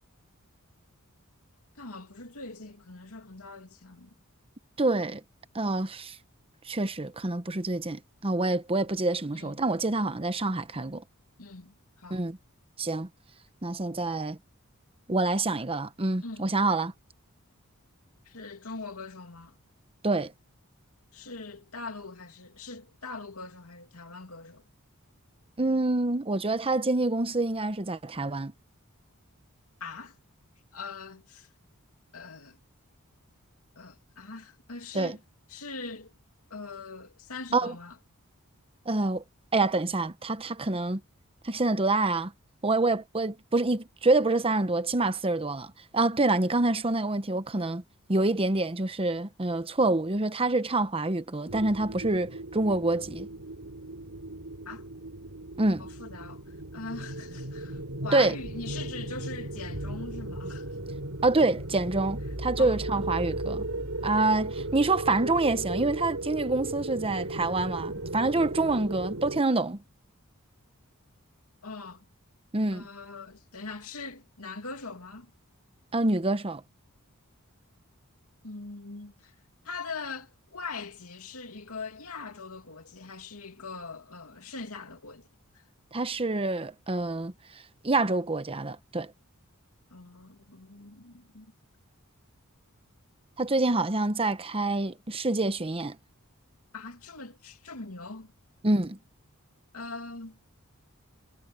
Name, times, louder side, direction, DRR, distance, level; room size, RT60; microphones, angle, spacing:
voice 1, 1.8-4.1 9.3-9.6 11.4-12.2 16.2-16.5 18.3-19.5 21.1-24.6 29.8-30.1 30.7-31.5 32.1-32.6 33.8-35.2 35.5-36.1 36.5-37.9 54.7-54.8 55.8-56.4 56.7-60.7 62.6-63.0 71.6-72.1 72.7-75.3 78.4-79.3 79.6-85.3 89.9-91.5 96.7-98.3 99.7-100.4, left 3 dB, 80° left, 2.8 m, -42 dB
voice 2, 4.8-5.2 5.5-6.2 6.6-11.0 12.1-12.4 12.8-13.1 13.6-14.4 15.1-16.9 20.0-20.3 25.6-28.5 34.9-35.2 37.5-37.8 38.9-39.2 39.5-41.0 41.4-42.3 42.6-47.8 48.1-53.3 55.6-55.9 58.1-58.3 61.2-63.6 64.0-69.8 72.5-72.9 75.9-76.6 85.9-87.3 87.8-89.1 93.4-96.0 98.6-99.0, right 2 dB, 25° right, 1.0 m, -27 dB
sound 1, 51.5-69.4, right 2 dB, 70° right, 5.3 m, -36 dB
head